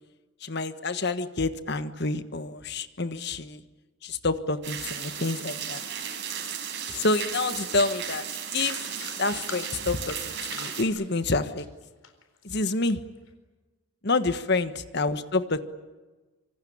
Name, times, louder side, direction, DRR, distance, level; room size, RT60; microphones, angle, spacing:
voice 1, 0.4-3.6 4.0-5.8 6.9-8.2 8.5-8.8 9.2-11.7 12.4-13.0 14.0-15.6, left 3 dB, 50° left, 11 dB, 1.4 m, -28 dB
sound 1, 4.6-10.8, right 8 dB, 55° right, 5.3 m, -35 dB
sound 2, 7.9-12.6 13.0-13.3, left 6 dB, 75° left, 4.1 m, -44 dB
26.0 x 25.5 x 8.8 m, 1.2 s
head